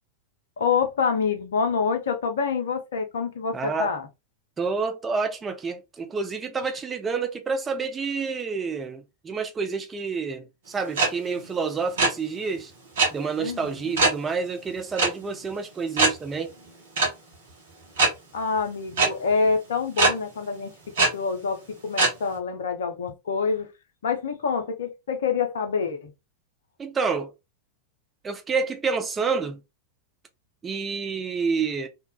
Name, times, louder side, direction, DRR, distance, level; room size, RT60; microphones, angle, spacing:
voice 1, 0.6-4.1 13.4-13.9 18.3-20.7 21.0-23.7 24.0-26.1, left 5 dB, 60° left, 0.6 m, -26 dB
voice 2, 3.5-3.9 4.6-12.7 13.1-16.6 26.8-27.3 28.2-29.6 30.6-31.9, right 5 dB, 20° right, 0.5 m, -28 dB
sound 1, 11.0-11.1 11.3-11.5 11.8-12.1 13.0-13.1 14.0-14.2 15.0-15.1 15.4-15.5 16.0-16.1 17.0-17.1 18.0-18.1 19.0-19.1 20.0-20.1 21.0-21.1 22.0-22.1, right 3 dB, 60° right, 1.2 m, -20 dB
2.7 x 2.3 x 2.2 m
figure-of-eight pair, 90°, 0 cm